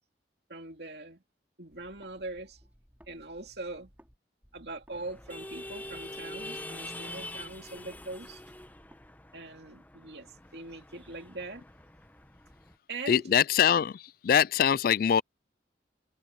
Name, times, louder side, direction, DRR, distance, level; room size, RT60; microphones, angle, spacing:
voice 1, 0.5-1.2 1.6-2.6 3.1-3.9 4.5-8.4 9.3-11.6 12.9-13.3, right 2 dB, 65° right, 2.5 m, -42 dB
sound 1, 1.7-4.2 4.4-9.1, equal, 10° right, 5.2 m, -60 dB
sound 2, 4.9-12.7, left 1 dB, 10° left, 0.9 m, -45 dB
voice 2, 13.1-15.2, left 8 dB, 50° left, 0.3 m, -23 dB
head